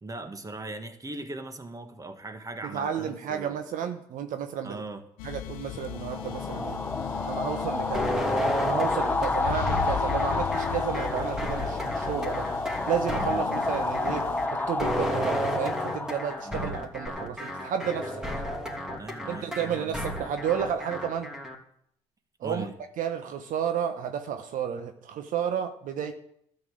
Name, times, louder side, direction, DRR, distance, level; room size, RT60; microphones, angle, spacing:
voice 1, 0.0-3.6 4.6-5.0 13.2-13.5 16.4-16.8 19.0-20.0 22.4-22.7, right 2 dB, 20° right, 8 dB, 1.7 m, -39 dB
voice 2, 2.6-4.8 5.2-6.8 7.2-8.1 8.6-12.5 12.9-18.2 19.3-21.3 22.4-22.7 23.0-26.1, right 8 dB, 60° right, 8 dB, 1.1 m, -32 dB
sound 1, 5.2-14.5, left 11 dB, 70° left, 0.8 m, -37 dB
sound 2, 5.9-17.1, left 2 dB, 10° left, 1.1 m, -30 dB
sound 3, 7.9-21.6, equal, 5° right, 2.8 m, -33 dB
13.0 x 5.6 x 7.8 m, 0.71 s
hypercardioid pair, 60°, 15 cm